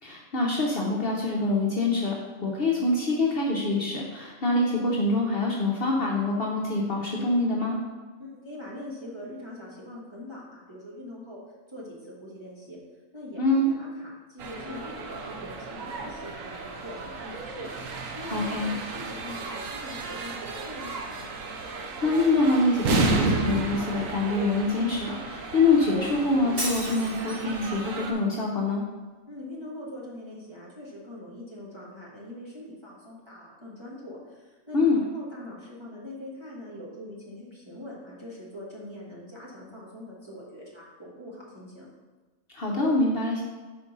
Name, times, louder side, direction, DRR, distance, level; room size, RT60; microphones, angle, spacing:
voice 1, 0.0-7.8 13.4-13.7 18.3-18.7 22.0-28.8 34.7-35.0 42.5-43.4, left 2 dB, 50° left, -3 dB, 0.9 m, -25 dB
voice 2, 8.2-11.4 11.7-12.8 13.1-21.3 29.3-41.9, left 1 dB, 20° right, -6 dB, 1.4 m, -42 dB
sound 1, 14.4-28.1, right 3 dB, 75° right, 1.1 m, -33 dB
Shatter, 26.6-27.6, right 1 dB, 60° right, 2.6 m, -34 dB
4.9 x 4.5 x 5.4 m, 1.3 s
omnidirectional pair, 1.4 m